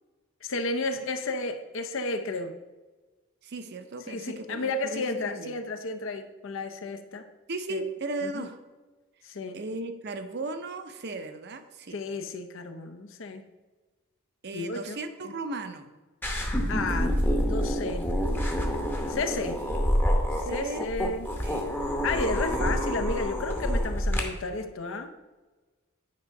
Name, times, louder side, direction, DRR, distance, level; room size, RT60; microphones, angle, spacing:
voice 1, 0.4-2.6 4.1-7.3 7.7-7.9 8.2-8.5 9.2-9.6 11.9-13.4 14.5-15.0 15.2-15.3 16.7-18.1 19.1-19.6 20.5-21.3 22.0-25.3, left 3 dB, 60° left, 7 dB, 0.6 m, -32 dB
voice 2, 3.4-5.5 7.5-8.6 9.5-12.0 14.4-15.9 20.3-20.8 21.4-21.8, right 3 dB, 50° right, 8 dB, 0.6 m, -36 dB
sound 1, 16.2-24.2, equal, 10° left, 0.8 m, -27 dB
9.5 x 3.7 x 5.2 m, 1.2 s
head